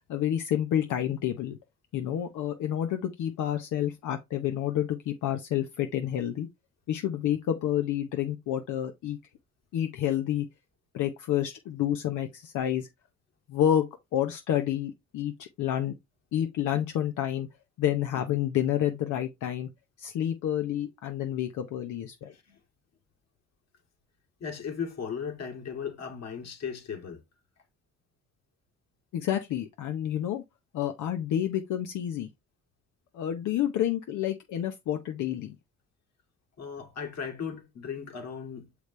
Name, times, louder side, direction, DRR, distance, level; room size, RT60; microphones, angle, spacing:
voice 1, 0.1-1.6 1.9-6.5 6.9-9.2 9.7-10.5 10.9-12.9 13.5-13.9 14.1-15.9 16.3-17.5 17.8-19.7 20.0-22.3 29.1-30.4 30.7-32.3 33.1-35.6, left 11 dB, 80° left, 0.8 m, -29 dB
voice 2, 22.3-22.6 24.4-27.2 36.6-38.7, left 6 dB, 60° left, 2.1 m, -37 dB
6.7 x 5.0 x 3.1 m
cardioid pair, 90°, 30 cm